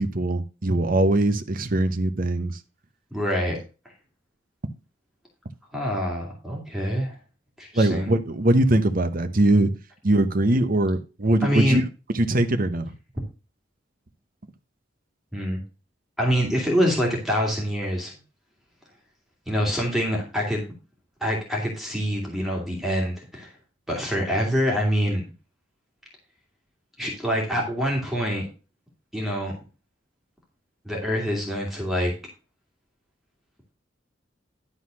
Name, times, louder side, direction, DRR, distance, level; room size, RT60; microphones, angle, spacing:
voice 1, 0.0-2.6 7.7-9.7 10.0-11.8 12.1-12.9, right 1 dB, 50° right, 1.0 m, -21 dB
voice 2, 3.1-3.6 5.7-7.1 7.6-8.1 11.4-11.8 15.3-15.6 16.2-18.1 19.5-20.7 21.2-23.5 23.9-25.2 27.0-28.4 29.1-29.5 30.8-32.1, equal, ahead, 2.3 m, -25 dB
11.5 x 4.0 x 6.2 m
head